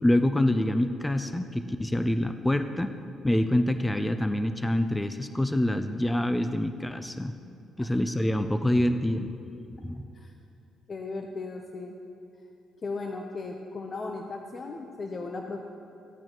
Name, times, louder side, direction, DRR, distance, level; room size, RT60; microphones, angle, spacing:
voice 1, 0.0-2.9 3.2-7.3 7.8-9.3 9.7-10.0, left 1 dB, 10° left, 9 dB, 0.4 m, -26 dB
voice 2, 10.9-12.0 12.8-15.6, left 3 dB, 40° left, 2 dB, 0.7 m, -36 dB
15.5 x 8.8 x 3.0 m, 2.6 s
cardioid pair, 90°, 0 cm